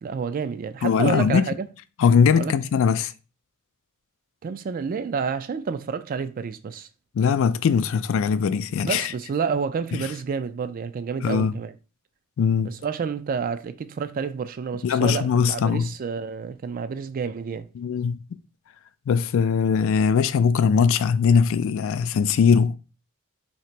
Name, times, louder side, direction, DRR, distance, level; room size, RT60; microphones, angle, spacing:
voice 1, 0.0-1.7 2.4-2.5 4.4-6.9 8.8-11.7 12.6-17.7, right 5 dB, 40° right, 0.3 m, -29 dB
voice 2, 0.8-1.4 2.0-3.1 7.1-9.1 9.9-10.1 11.2-11.6 12.4-12.8 14.8-15.9 17.8-18.2 19.1-22.8, left 6 dB, 65° left, 0.3 m, -20 dB
2.9 x 2.8 x 4.3 m
head